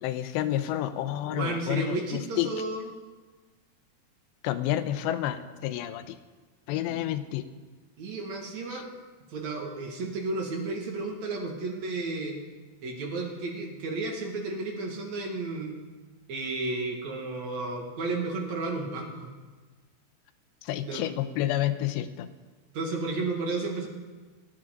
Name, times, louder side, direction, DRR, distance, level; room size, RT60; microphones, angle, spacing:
voice 1, 0.0-2.5 4.4-6.2 6.7-7.5 8.7-8.8 20.6-22.3, left 13 dB, 85° left, 11 dB, 2.9 m, -30 dB
voice 2, 1.3-2.9 6.9-7.0 8.0-8.9 9.3-12.4 12.8-15.7 16.3-19.3 20.8-21.0 22.7-23.9, right 3 dB, 50° right, 1 dB, 2.6 m, -32 dB
28.5 x 9.7 x 3.9 m, 1.3 s
omnidirectional pair, 5.0 m